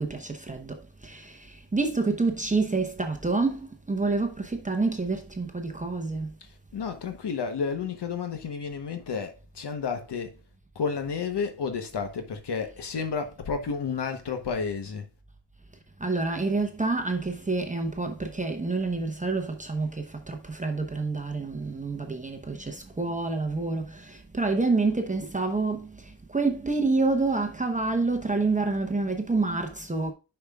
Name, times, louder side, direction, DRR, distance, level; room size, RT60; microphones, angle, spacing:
voice 1, 0.0-6.4 16.0-30.1, right 3 dB, 20° right, 0.8 m, -28 dB
voice 2, 6.4-10.4 10.7-15.1, left 5 dB, 75° left, 1.1 m, -31 dB
10.0 x 5.9 x 2.3 m
wide cardioid pair, 175°, 41 cm